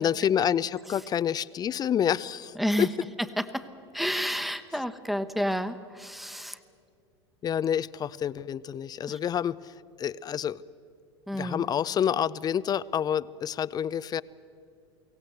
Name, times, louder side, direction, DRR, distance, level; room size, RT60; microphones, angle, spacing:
voice 1, 0.0-2.9 7.4-10.6 11.3-14.2, left 9 dB, 25° left, 20 dB, 0.5 m, -28 dB
voice 2, 3.9-6.6 9.1-9.2 11.3-11.6, equal, ahead, 10 dB, 1.1 m, -30 dB
23.5 x 17.0 x 7.9 m, 2.5 s
hypercardioid pair, 85°, 14 cm